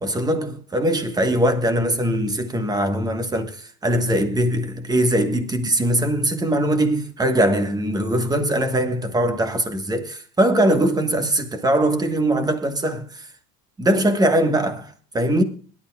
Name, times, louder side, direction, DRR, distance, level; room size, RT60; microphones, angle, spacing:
voice 1, 0.0-13.3 13.8-15.4, right 1 dB, 10° right, 1.4 m, -21 dB
22.5 x 11.5 x 2.3 m
cardioid pair, 150°, 31 cm